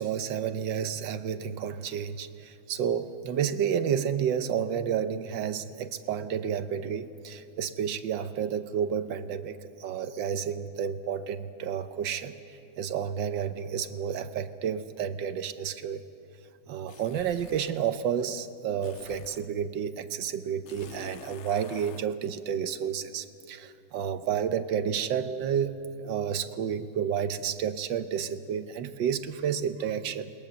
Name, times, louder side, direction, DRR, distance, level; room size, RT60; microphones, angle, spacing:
voice 1, 0.0-12.3 12.8-16.0 16.7-25.7 26.0-30.3, right 8 dB, 85° right, 11 dB, 1.6 m, -30 dB
sound 1, 16.9-17.8 18.8-19.5 20.7-22.1, left 9 dB, 65° left, 0.7 m, -48 dB
28.5 x 21.0 x 6.9 m, 2.6 s
omnidirectional pair, 2.0 m